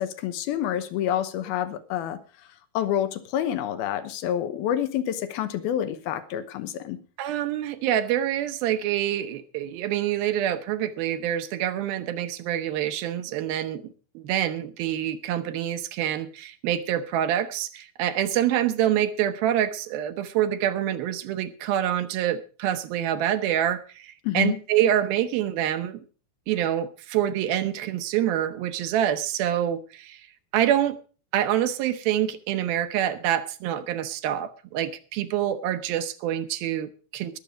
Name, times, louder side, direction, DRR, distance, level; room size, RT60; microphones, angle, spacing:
voice 1, 0.0-2.2 2.7-7.0 24.2-24.6, left 10 dB, 80° left, 2.9 m, -28 dB
voice 2, 7.2-13.9 14.1-26.0 26.5-30.3 30.5-31.0 31.3-37.4, right 11 dB, 75° right, 2.6 m, -26 dB
21.0 x 7.2 x 5.0 m
omnidirectional pair, 4.4 m